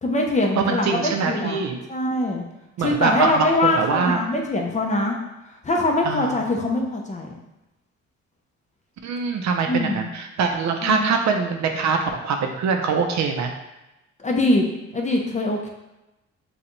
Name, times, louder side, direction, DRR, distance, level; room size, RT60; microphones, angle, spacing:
voice 1, 0.0-2.4 2.8-5.1 5.6-7.4 9.7-10.1 10.8-11.0 14.2-15.7, left 2 dB, 25° left, 0 dB, 0.8 m, -23 dB
voice 2, 0.6-1.8 2.8-4.2 6.0-6.4 9.0-13.5, right 5 dB, 65° right, 4 dB, 0.6 m, -23 dB
5.9 x 2.4 x 3.1 m, 0.96 s
cardioid pair, 90°, 30 cm